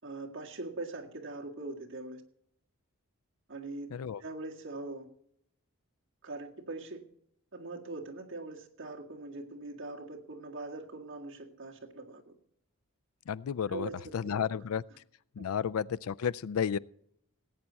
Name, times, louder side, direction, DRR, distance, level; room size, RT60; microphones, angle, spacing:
voice 1, 0.0-2.2 3.5-3.9 4.2-5.1 6.2-7.0 7.5-12.3 13.7-14.4 15.4-15.5, right 2 dB, 55° right, 2.0 m, -42 dB
voice 2, 3.9-4.2 13.3-14.8 15.4-16.8, left 7 dB, 75° left, 0.4 m, -32 dB
18.5 x 8.8 x 4.1 m
head